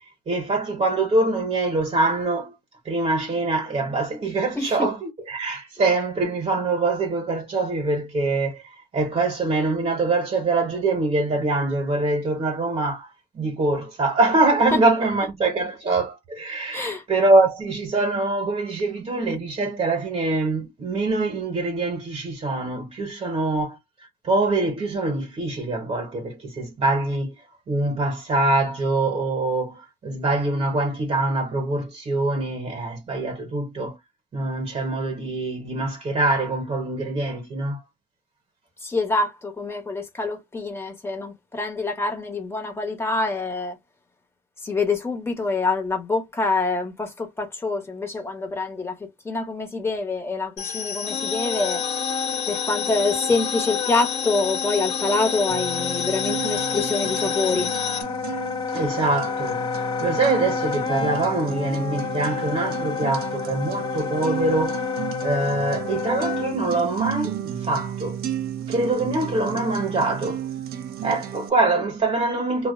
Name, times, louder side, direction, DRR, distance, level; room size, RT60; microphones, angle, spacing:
voice 1, 0.3-2.5 2.8-8.6 8.9-13.1 13.3-23.8 24.2-27.4 27.7-34.0 34.3-37.8 58.7-64.8 65.2-68.2 68.7-70.4 71.0-72.7, right 2 dB, 35° right, 0.9 m, -24 dB
voice 2, 4.5-4.9 14.7-14.8 15.2-15.5 16.7-17.0 38.8-43.8 44.6-51.8 52.5-57.7, left 3 dB, 15° left, 0.9 m, -26 dB
sound 1, 50.6-58.0, left 8 dB, 85° left, 0.5 m, -29 dB
Wind instrument woodwind instrument, 51.1-66.6, left 6 dB, 30° left, 0.3 m, -30 dB
sound 2, 55.5-71.5, right 10 dB, 65° right, 0.6 m, -33 dB
2.4 x 2.1 x 2.4 m
cardioid pair, 110°, 17 cm